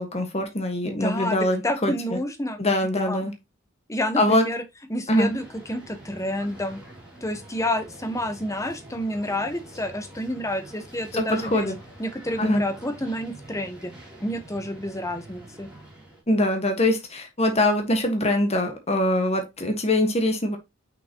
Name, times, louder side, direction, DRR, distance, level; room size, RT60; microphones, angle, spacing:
voice 1, 0.0-2.2 2.6-3.3 4.2-4.5 5.1-5.3 11.1-11.8 12.4-12.6 16.3-20.6, left 1 dB, 30° left, 1.4 m, -23 dB
voice 2, 0.8-3.3 3.9-4.6 4.9-6.8 7.2-11.7 12.0-13.9 14.2-15.7, left 1 dB, 15° left, 1.0 m, -29 dB
sound 1, 5.1-16.2, right 1 dB, 5° right, 3.0 m, -45 dB
6.2 x 5.9 x 2.9 m
head